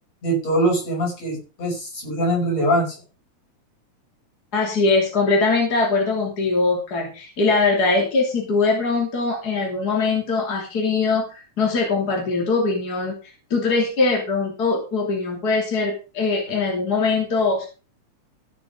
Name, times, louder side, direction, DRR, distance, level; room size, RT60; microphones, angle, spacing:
voice 1, 0.2-3.0, right 1 dB, 60° left, -2 dB, 7.0 m, -22 dB
voice 2, 4.5-13.1 13.5-17.7, left 3 dB, 30° left, 0 dB, 3.3 m, -21 dB
15.0 x 6.9 x 5.1 m, 0.33 s
omnidirectional pair, 3.3 m